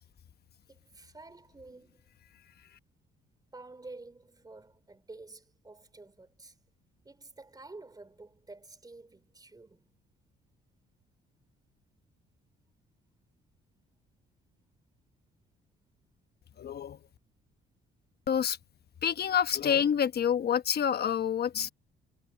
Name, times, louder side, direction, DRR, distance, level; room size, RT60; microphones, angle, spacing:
voice 1, 0.7-2.0 3.5-6.5 7.0-9.9, right 3 dB, 20° right, 3.4 m, -50 dB
voice 2, 16.6-17.0 18.3-18.6 19.0-21.7, left 8 dB, 55° left, 1.0 m, -27 dB
cardioid pair, 90°, 20 cm